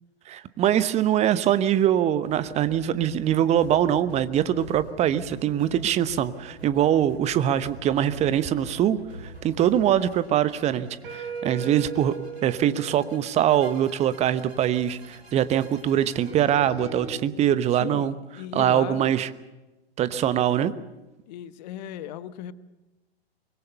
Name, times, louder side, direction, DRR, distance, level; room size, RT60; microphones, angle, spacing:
voice 1, 0.3-12.2 12.4-18.1 18.5-19.3 20.0-20.7, right 10 dB, 20° right, 14 dB, 0.9 m, -23 dB
sound 1, 2.2-16.4, equal, 85° right, 4.7 m, -46 dB
sound 2, 9.8-17.1, right 5 dB, 55° right, 7.1 m, -39 dB
voice 2, 17.8-19.1 21.3-22.5, left 12 dB, 45° left, 14 dB, 1.1 m, -37 dB
24.0 x 21.5 x 6.9 m, 1.1 s
figure-of-eight pair, 105°, 31 cm